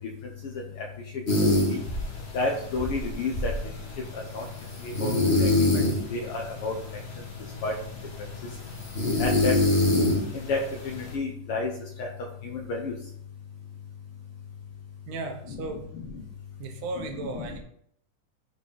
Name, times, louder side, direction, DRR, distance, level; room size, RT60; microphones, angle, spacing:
sound 1, 1.3-11.1, left 2 dB, 90° left, 0.5 m, -27 dB
voice 1, 1.3-1.8 2.3-3.5 4.3-4.4 4.8-5.1 5.4-5.5 6.1-6.8 7.6-7.7 9.2-9.5 10.5-11.7 12.0-12.1 12.4-12.9 15.5-15.6 15.9-16.1 17.2-17.6, left 3 dB, 70° left, 0 dB, 1.3 m, -30 dB
voice 2, 15.1-15.9 16.6-17.6, right 3 dB, 75° right, 4 dB, 2.6 m, -35 dB
6.6 x 4.7 x 5.4 m, 0.66 s
omnidirectional pair, 3.8 m